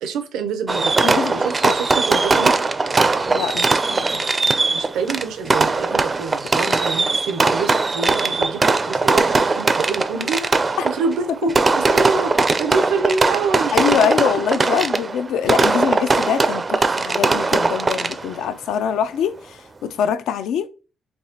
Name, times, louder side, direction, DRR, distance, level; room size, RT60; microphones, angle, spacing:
voice 1, 0.0-2.5 4.7-13.8, right 5 dB, 90° right, 0.6 m, -26 dB
Fireworks, 0.7-18.4, right 3 dB, 30° right, 0.4 m, -20 dB
voice 2, 1.0-1.7 3.3-4.2 6.7-6.8 10.8-10.9 13.7-20.7, left 8 dB, 80° left, 0.4 m, -24 dB
4.5 x 2.8 x 2.8 m
cardioid pair, 90°, 0 cm